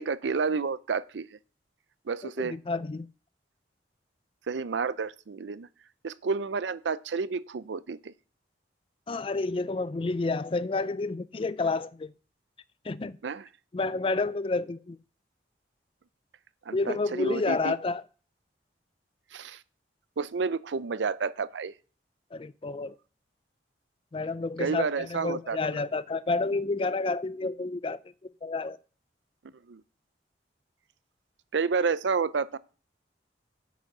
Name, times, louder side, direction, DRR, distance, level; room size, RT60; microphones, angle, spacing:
voice 1, 0.0-1.4 2.1-2.6 4.5-5.7 6.0-8.1 13.2-13.5 16.7-17.7 19.3-19.6 20.2-21.7 24.6-25.8 29.7-29.8 31.5-32.6, right 5 dB, 90° right, 0.5 m, -30 dB
voice 2, 2.4-3.1 9.1-12.1 12.8-13.2 13.7-15.0 16.7-18.0 22.3-23.0 24.1-28.0 28.4-28.8, left 3 dB, 30° left, 0.4 m, -30 dB
8.5 x 6.3 x 5.4 m
head